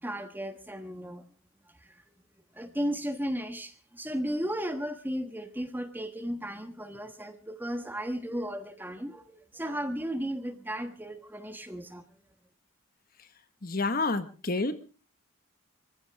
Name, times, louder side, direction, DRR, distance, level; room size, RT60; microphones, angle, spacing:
voice 1, 0.0-1.2 1.8-2.0 2.5-12.0, equal, 10° right, 1.3 m, -35 dB
voice 2, 13.6-14.7, left 3 dB, 45° left, 1.4 m, -29 dB
24.5 x 15.5 x 3.4 m
head